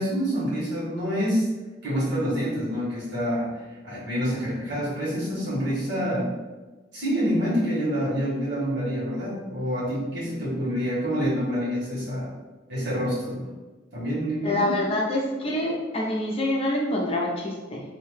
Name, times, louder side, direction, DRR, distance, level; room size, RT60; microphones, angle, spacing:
voice 1, 0.0-1.5 1.8-3.5 3.8-6.3 6.9-12.3 12.7-13.4 13.9-14.8, equal, 85° right, -8 dB, 1.3 m, -27 dB
voice 2, 14.4-17.8, left 1 dB, 35° left, -2 dB, 0.5 m, -26 dB
2.7 x 2.2 x 3.2 m, 1.2 s
head